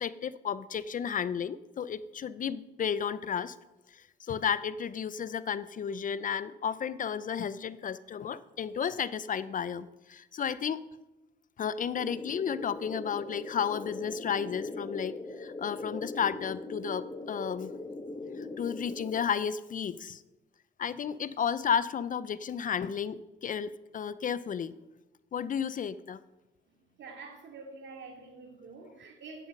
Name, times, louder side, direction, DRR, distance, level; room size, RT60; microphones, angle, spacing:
voice 1, 0.0-3.5 4.3-10.8 11.6-17.7 18.4-20.2 20.8-24.7 25.3-26.2, left 7 dB, 40° left, 0.5 m, -33 dB
sound 1, 11.9-19.3, left 2 dB, 25° left, 0.8 m, -40 dB
voice 2, 26.8-29.5, right 4 dB, 65° right, 2.4 m, -47 dB
8.8 x 7.7 x 6.4 m
cardioid pair, 90°, 20 cm